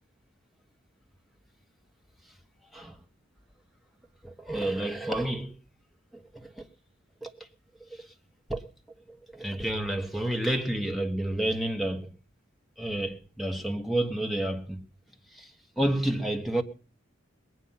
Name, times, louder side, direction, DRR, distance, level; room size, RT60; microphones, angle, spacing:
voice 1, 4.2-5.6 6.1-6.7 7.2-7.5 7.8-8.1 8.5-8.6 9.1-12.2 12.8-14.9 15.3-16.6, right 1 dB, ahead, 1.3 m, -30 dB
20.5 x 9.1 x 5.7 m
head